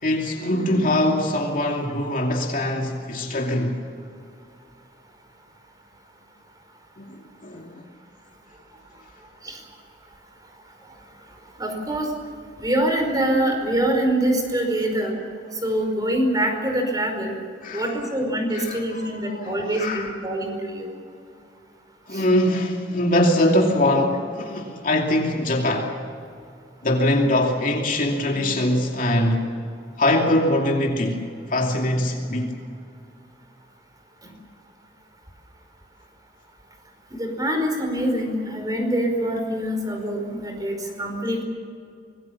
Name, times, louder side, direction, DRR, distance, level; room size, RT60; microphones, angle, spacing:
voice 1, 0.0-3.7 7.0-7.7 17.6-17.9 18.5-18.8 19.3-20.1 22.1-25.9 26.8-29.5 30.0-31.2 31.5-32.5, left 1 dB, 50° left, 2.7 m, -22 dB
voice 2, 11.6-12.1 12.6-15.2 15.6-17.4 17.7-20.9 22.1-22.2 37.1-41.4, right 1 dB, 20° right, 5.0 m, -24 dB
25.5 x 20.5 x 7.2 m
head